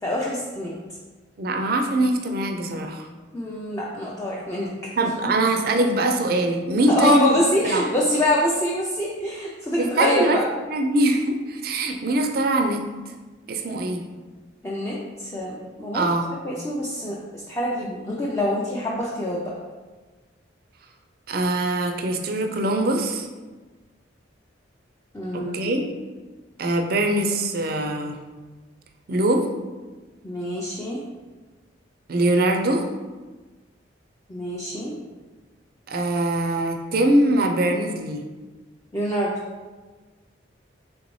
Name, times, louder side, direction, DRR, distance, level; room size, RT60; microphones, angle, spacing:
voice 1, 0.0-0.7 3.3-4.7 6.9-10.4 14.6-16.0 16.4-19.4 25.1-25.8 30.2-31.0 34.3-34.9 38.9-39.4, left 1 dB, 15° left, -5 dB, 0.4 m, -25 dB
voice 2, 1.4-3.1 5.0-7.4 7.6-7.9 9.8-10.4 10.7-12.8 13.5-14.0 15.9-16.3 21.3-23.3 25.3-25.8 26.6-28.2 29.1-29.5 32.1-32.8 35.9-38.2, right 1 dB, 50° right, 4 dB, 0.4 m, -22 dB
4.0 x 3.4 x 3.1 m, 1.3 s
head